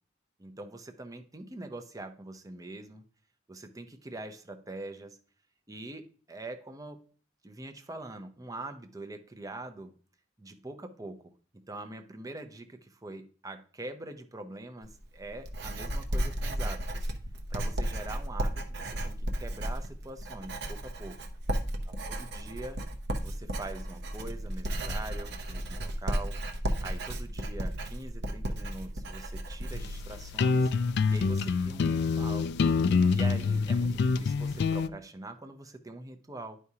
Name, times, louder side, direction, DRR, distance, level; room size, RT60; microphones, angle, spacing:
voice 1, 0.4-3.0 3.5-5.2 5.7-7.1 7.4-9.9 10.4-11.3 11.7-17.1 17.5-21.2 22.1-22.8 23.2-26.4 26.8-30.7 31.1-32.5 33.1-36.6, right 2 dB, 15° right, 6 dB, 0.6 m, -43 dB
Writing, 14.8-30.2, right 1 dB, 55° right, 0.8 m, -34 dB
sound 1, 29.7-34.9, left 4 dB, 55° left, 0.3 m, -26 dB
11.0 x 4.8 x 2.8 m, 0.42 s
head